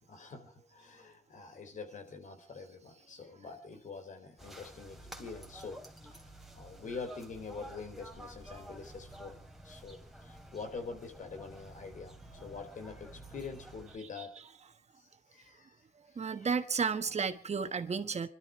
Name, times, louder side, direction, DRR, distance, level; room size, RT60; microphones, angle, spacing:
voice 1, 0.1-9.4 9.6-14.5 15.0-15.8 16.1-16.5, left 4 dB, 70° left, 3.8 m, -46 dB
sound 1, 4.4-14.0, right 1 dB, ahead, 3.1 m, -51 dB
voice 2, 16.1-18.3, right 5 dB, 55° right, 1.4 m, -32 dB
25.0 x 12.5 x 4.7 m
cardioid pair, 75°, 14 cm